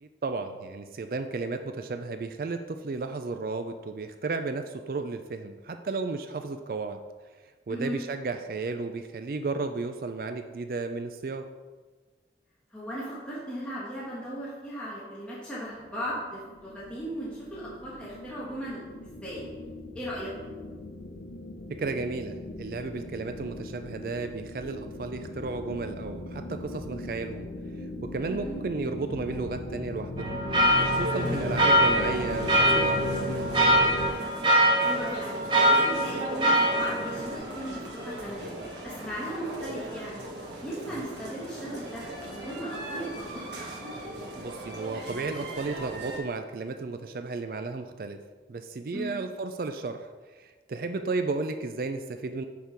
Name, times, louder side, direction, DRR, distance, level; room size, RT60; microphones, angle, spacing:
voice 1, 0.0-7.0 7.7-11.4 21.8-27.5 28.1-30.4 30.8-33.5 40.9-41.0 44.4-48.2 48.5-50.1 50.4-52.4, right 3 dB, 55° right, 7 dB, 0.4 m, -33 dB
voice 2, 12.7-19.4 19.9-20.3 28.3-28.6 31.2-31.4 34.8-38.5 38.8-40.2 40.6-43.4 48.9-49.2, equal, 5° left, -9 dB, 1.5 m, -37 dB
sound 1, 15.8-34.1, left 2 dB, 80° left, 0.8 m, -38 dB
sound 2, 30.2-37.4, equal, 25° right, 0.9 m, -24 dB
sound 3, 30.6-46.2, right 1 dB, 85° right, 1.4 m, -38 dB
6.6 x 5.4 x 4.5 m, 1.3 s
head